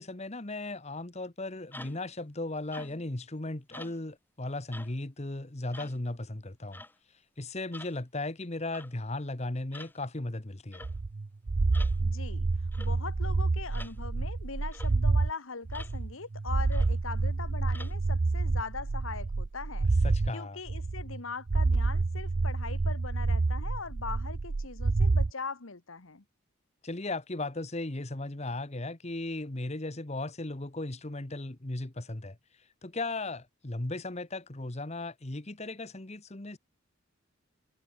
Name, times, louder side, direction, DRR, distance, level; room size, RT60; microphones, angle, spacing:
voice 1, 0.0-6.8 7.4-10.9 20.0-20.6 26.8-32.4 32.8-36.6, left 2 dB, 35° left, 1.3 m, -36 dB
sound 1, 1.7-2.1 2.7-3.1 3.7-4.0 4.7-5.0 5.7-6.0 6.7-7.0 7.7-8.0 8.7-8.9 9.7-10.0 10.7-10.9 11.7-12.0 12.7-13.0 13.7-14.0 14.7-14.9 15.7-16.0 16.7-17.0 17.7-17.9, left 2 dB, 10° left, 5.6 m, -47 dB
sound 2, 10.8-15.3 15.7-20.3 20.7-21.2 21.5-25.3, right 3 dB, 45° right, 0.5 m, -28 dB
voice 2, 12.0-12.5 12.8-19.9 20.3-26.2, left 4 dB, 80° left, 1.5 m, -40 dB
head